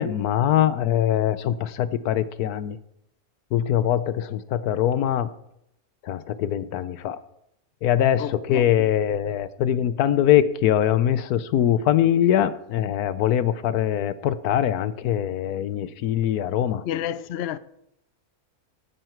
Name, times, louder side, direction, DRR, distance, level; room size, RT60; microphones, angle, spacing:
voice 1, 0.0-2.8 3.5-5.3 6.0-7.2 7.8-16.8, left 10 dB, 85° left, 1.2 m, -22 dB
voice 2, 8.2-8.6 16.9-17.6, left 11 dB, 65° left, 0.6 m, -30 dB
18.5 x 6.7 x 4.5 m
omnidirectional pair, 1.6 m